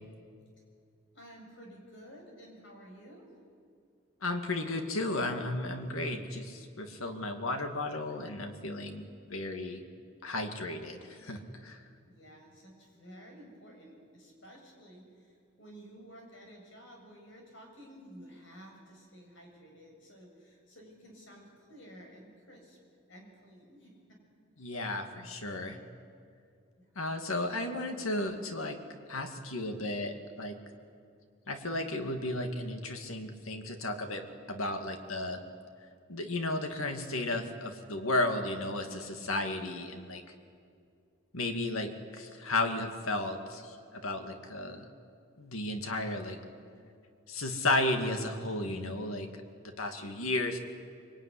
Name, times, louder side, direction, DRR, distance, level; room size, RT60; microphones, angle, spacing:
voice 1, 1.1-3.3 12.1-22.8 23.1-24.2 25.1-25.4 26.8-27.0, equal, 60° left, 1 dB, 7.1 m, -53 dB
voice 2, 4.2-9.8 10.2-11.8 24.6-25.8 27.0-28.8 29.1-30.6 31.5-35.4 36.1-40.2 41.3-44.9 45.4-46.4 47.3-49.4 49.8-50.6, left 2 dB, 85° left, 5 dB, 2.4 m, -34 dB
24.0 x 23.5 x 10.0 m, 2.3 s
head